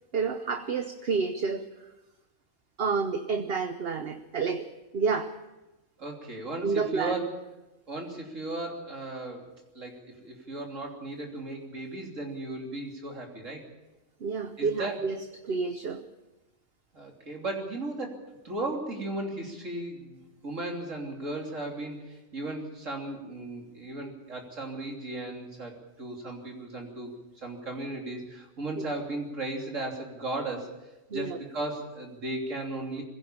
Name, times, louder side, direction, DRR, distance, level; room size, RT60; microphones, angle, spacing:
voice 1, 0.1-1.7 2.8-4.7 4.9-5.3 6.6-7.3 14.2-16.0 31.1-31.4, right 5 dB, 55° right, 8 dB, 1.1 m, -29 dB
voice 2, 6.0-7.3 7.9-9.5 9.8-13.6 14.6-15.0 16.9-27.1 27.4-30.8 31.1-33.0, right 2 dB, 80° right, 0 dB, 3.6 m, -36 dB
22.0 x 16.5 x 7.2 m, 1.0 s
omnidirectional pair, 1.3 m